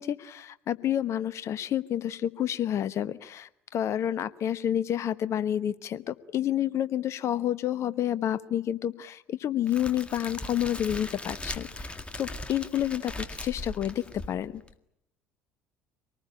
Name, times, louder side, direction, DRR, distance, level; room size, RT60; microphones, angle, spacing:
voice 1, 0.0-14.6, left 11 dB, 45° left, 15 dB, 1.1 m, -29 dB
Crackle, 9.7-14.7, left 2 dB, 15° left, 2.0 m, -39 dB
25.5 x 19.5 x 9.9 m, 0.80 s
figure-of-eight pair, 60°, 6 cm